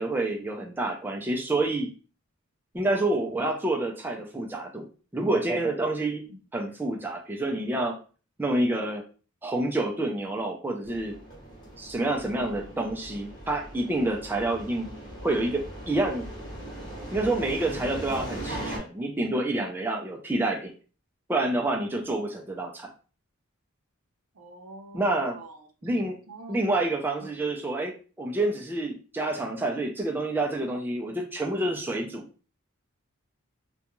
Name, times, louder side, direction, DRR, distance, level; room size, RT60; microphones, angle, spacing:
voice 1, 0.0-1.9 2.7-4.9 5.1-6.2 6.5-7.9 8.4-9.0 9.4-11.1 11.8-14.9 15.2-16.2 17.1-20.7 21.3-22.9 24.9-25.4 25.8-26.2 26.5-32.2, right 2 dB, 10° right, 0.3 m, -28 dB
sound 1, 10.8-18.8, right 1 dB, 20° left, 0.9 m, -39 dB
voice 2, 12.2-12.8 24.3-25.9 26.3-26.6 27.2-27.3, right 2 dB, 85° right, 0.6 m, -46 dB
2.4 x 2.2 x 2.9 m
head